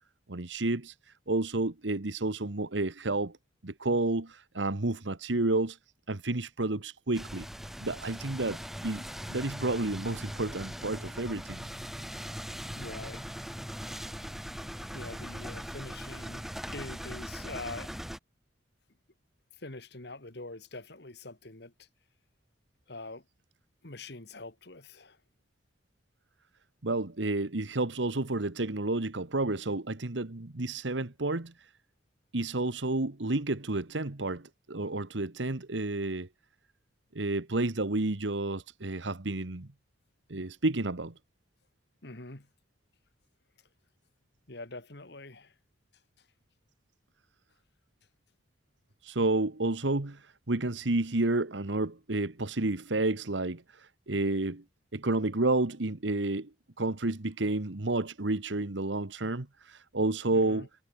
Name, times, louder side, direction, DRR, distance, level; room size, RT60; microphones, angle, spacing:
voice 1, 0.3-0.9 1.3-3.4 3.6-5.8 6.1-9.0 9.3-11.7 26.8-31.7 32.3-36.3 37.1-39.7 40.3-41.1 49.0-54.6 54.9-56.5 56.8-60.7, right 2 dB, 75° right, 1.5 m, -30 dB
sound 1, 7.1-18.2, equal, ahead, 2.2 m, -40 dB
voice 2, 12.7-13.4 14.9-17.9 19.6-21.9 22.9-23.2 23.8-25.2 42.0-42.5 44.5-45.5 46.2-46.3 60.3-60.7, left 2 dB, 60° left, 2.5 m, -44 dB
head